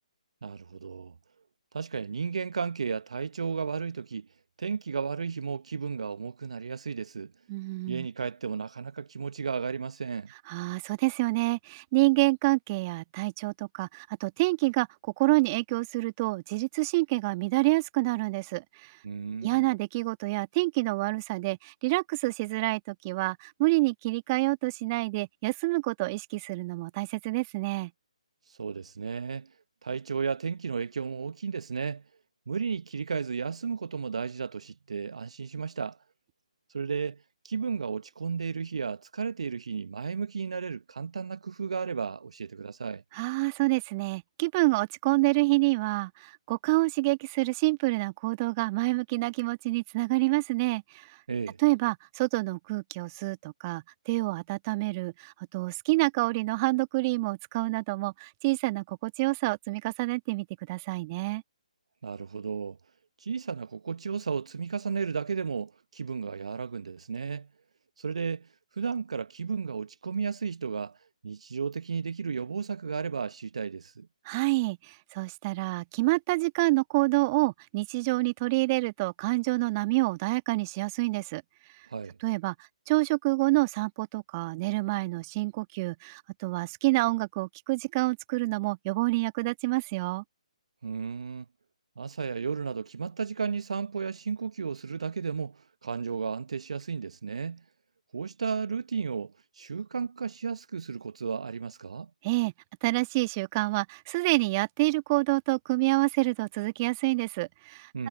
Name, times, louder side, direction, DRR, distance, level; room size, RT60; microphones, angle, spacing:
voice 1, 0.4-1.1 1.7-4.3 4.6-7.3 7.9-10.3 19.0-19.7 28.5-29.5 29.8-32.0 32.5-36.0 36.7-43.0 51.3-51.6 62.0-62.8 63.2-67.5 68.0-68.5 68.8-71.0 71.2-74.1 81.9-82.2 90.8-91.4 92.0-97.6 98.1-102.1 107.9-108.1, right 5 dB, 60° right, 1.2 m, -33 dB
voice 2, 7.5-8.1 10.5-14.9 15.2-19.0 19.4-27.9 43.1-51.1 51.6-61.4 74.2-81.4 82.2-82.5 82.9-90.2 102.2-102.5 102.8-107.9, right 23 dB, 25° right, 1.5 m, -27 dB
figure-of-eight pair, 140°, 4 cm